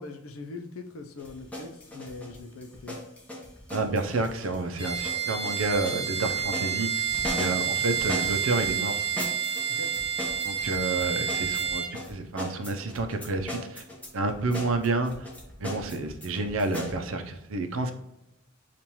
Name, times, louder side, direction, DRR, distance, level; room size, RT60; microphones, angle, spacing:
voice 1, 0.0-3.0 7.6-7.7 9.7-9.9, left 3 dB, 90° left, 4 dB, 0.6 m, -41 dB
sound 1, 1.2-8.7 9.2-17.0, left 1 dB, 5° left, 1.0 m, -38 dB
voice 2, 3.7-6.9 7.4-9.0 10.4-13.8 14.1-15.3 15.6-17.9, right 3 dB, 70° right, 6 dB, 0.6 m, -29 dB
Bowed string instrument, 4.8-11.9, right 8 dB, 25° right, 0.9 m, -29 dB
6.9 x 2.5 x 3.0 m, 0.88 s
head